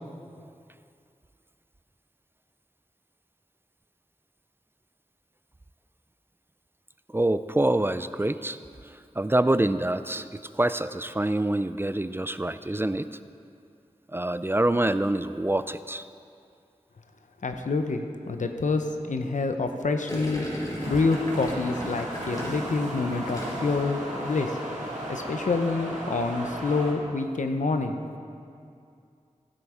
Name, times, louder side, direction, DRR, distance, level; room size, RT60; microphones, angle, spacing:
voice 1, 7.1-13.1 14.1-16.1, right 1 dB, 20° right, 13 dB, 0.4 m, -26 dB
voice 2, 17.4-20.5 20.9-24.6 25.1-28.0, left 3 dB, 90° left, 6 dB, 0.8 m, -27 dB
Gurgling, 20.1-23.9 24.1-24.5, equal, 30° left, 3.2 m, -36 dB
sound 1, 20.8-26.9, right 1 dB, 90° right, 2.2 m, -35 dB
14.0 x 7.9 x 4.9 m, 2.4 s
wide cardioid pair, 45°, 12 cm